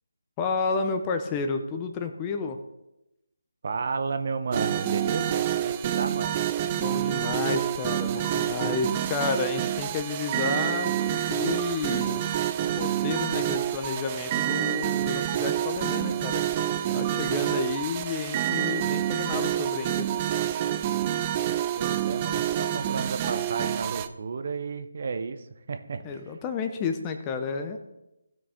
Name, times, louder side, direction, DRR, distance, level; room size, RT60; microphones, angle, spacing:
voice 1, 0.4-2.6 6.7-12.2 12.8-16.4 16.9-20.1 26.0-27.8, left 5 dB, 20° left, 6 dB, 0.7 m, -31 dB
voice 2, 3.6-6.4 21.8-26.2, right 4 dB, 45° right, 8 dB, 0.8 m, -32 dB
sound 1, 4.5-24.1, right 11 dB, 25° right, 0.4 m, -28 dB
16.0 x 6.1 x 3.6 m, 0.92 s
figure-of-eight pair, 150°, 0 cm